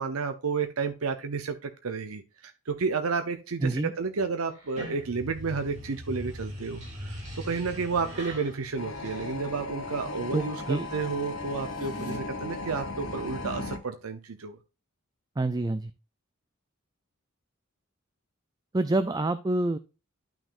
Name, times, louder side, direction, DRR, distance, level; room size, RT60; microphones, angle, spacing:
voice 1, 0.0-14.6, right 4 dB, 85° right, 8 dB, 0.7 m, -31 dB
voice 2, 3.6-3.9 10.3-10.9 15.4-15.9 18.7-19.8, right 2 dB, 20° right, 12 dB, 0.3 m, -27 dB
sound 1, 4.5-9.8, equal, 35° right, 3.1 m, -41 dB
sound 2, 8.8-13.8, left 2 dB, 75° left, 1.8 m, -36 dB
sound 3, 11.6-12.2, equal, 35° left, 2.0 m, -40 dB
11.5 x 6.0 x 2.5 m, 0.32 s
head